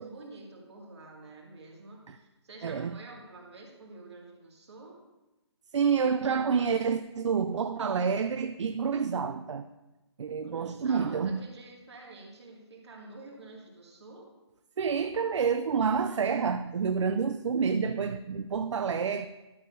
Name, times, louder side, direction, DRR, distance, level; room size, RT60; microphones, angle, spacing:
voice 1, 0.0-5.0 10.4-14.3, right 2 dB, 65° right, 2.2 m, -48 dB
voice 2, 2.6-3.0 5.7-9.7 10.2-11.4 14.8-19.3, right 6 dB, 85° right, 0.4 m, -28 dB
12.5 x 6.7 x 2.7 m
hypercardioid pair, 180°, 15 cm